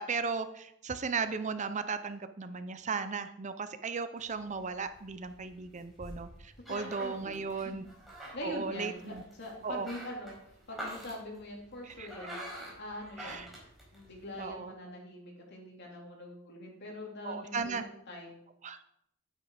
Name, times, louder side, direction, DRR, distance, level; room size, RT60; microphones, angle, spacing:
voice 1, 0.0-7.8 8.4-9.2 9.6-9.9 11.8-12.4 13.2-13.5 14.4-14.7 17.2-17.8 18.6-18.8, right 5 dB, 35° right, 11 dB, 0.6 m, -36 dB
sound 1, 4.2-14.5, equal, ahead, 4.7 m, -47 dB
voice 2, 6.7-7.6 8.3-10.4 10.7-12.5 12.8-18.4, left 1 dB, 55° left, -1 dB, 3.4 m, -44 dB
10.5 x 9.2 x 5.0 m, 0.76 s
head